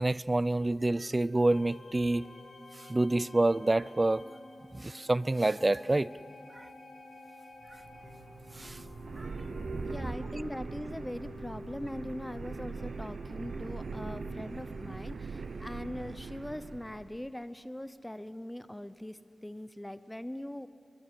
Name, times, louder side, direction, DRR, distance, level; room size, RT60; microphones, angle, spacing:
voice 1, 0.0-2.3 2.7-4.2 4.7-6.1 6.5-6.7 8.5-8.8 9.2-10.0, right 2 dB, 30° right, 19 dB, 0.5 m, -28 dB
sound 1, 0.5-16.3, left 2 dB, 75° left, 2.9 m, -51 dB
sound 2, 7.6-17.2, right 4 dB, 80° right, 1.0 m, -41 dB
voice 2, 9.8-20.7, left 1 dB, 10° left, 13 dB, 0.8 m, -41 dB
23.0 x 21.5 x 9.8 m, 2.5 s
wide cardioid pair, 60°, 0 cm